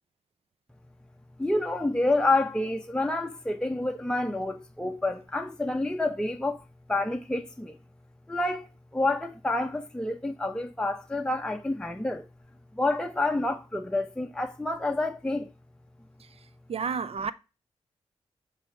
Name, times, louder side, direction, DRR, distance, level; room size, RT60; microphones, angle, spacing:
voice 1, 1.4-6.6 6.9-7.8 8.3-8.7 8.9-12.3 12.7-15.5, left 2 dB, 5° left, 0.8 m, -28 dB
voice 2, 16.7-17.3, right 6 dB, 60° right, 0.6 m, -30 dB
7.6 x 3.4 x 4.6 m
supercardioid pair, 40°, 12 cm